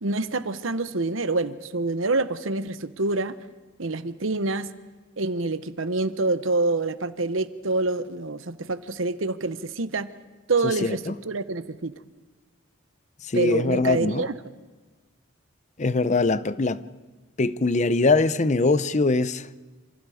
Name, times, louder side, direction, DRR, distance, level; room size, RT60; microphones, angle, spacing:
voice 1, 0.0-3.4 3.8-4.7 5.2-10.1 10.5-11.9 13.3-14.3, right 3 dB, 85° right, 1.0 m, -26 dB
voice 2, 10.6-11.1 13.3-14.3 15.8-16.8 17.4-19.6, left 3 dB, 35° left, 0.6 m, -22 dB
27.5 x 26.5 x 5.0 m
head